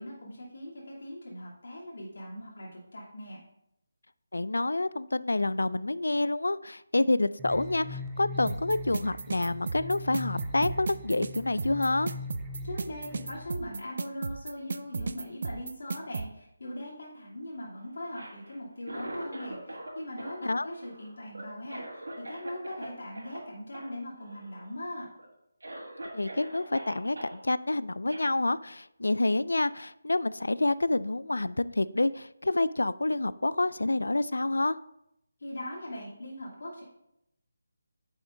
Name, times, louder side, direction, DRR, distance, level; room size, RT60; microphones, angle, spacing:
voice 1, 0.0-3.4 12.6-21.8 22.3-25.1 35.4-36.8, left 1 dB, 70° left, -5 dB, 2.9 m, -40 dB
voice 2, 4.3-12.1 20.4-20.7 26.1-34.8, left 2 dB, 85° left, 17 dB, 0.3 m, -28 dB
sound 1, 7.4-13.5, left 2 dB, 15° right, 0.6 m, -40 dB
sound 2, 8.5-16.3, right 4 dB, 55° right, 0.4 m, -34 dB
Cough, 18.0-19.9 20.2-22.9 23.2-23.4 23.7-23.9 24.2-24.7 25.2-25.3 25.6-27.3 28.1-28.3, right 1 dB, 85° right, 2.6 m, -42 dB
9.1 x 7.1 x 2.7 m, 0.82 s
figure-of-eight pair, 165°, 0 cm